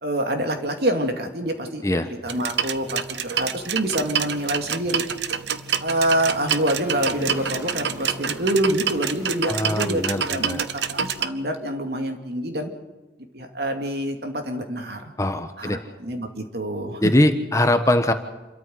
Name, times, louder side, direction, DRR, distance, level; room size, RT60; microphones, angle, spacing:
voice 1, 0.0-1.8 2.2-5.0 5.8-12.7 13.3-15.1 15.6-17.1, right 1 dB, 65° right, 4 dB, 2.6 m, -26 dB
Motorcycle, 1.2-11.3, equal, 15° right, 3.8 m, -46 dB
sound 1, 2.3-11.3, right 8 dB, 90° right, 1.0 m, -27 dB
voice 2, 9.5-10.6 15.2-15.8 17.0-18.1, left 1 dB, 20° left, 7 dB, 1.2 m, -21 dB
27.5 x 13.5 x 8.0 m, 1.2 s
head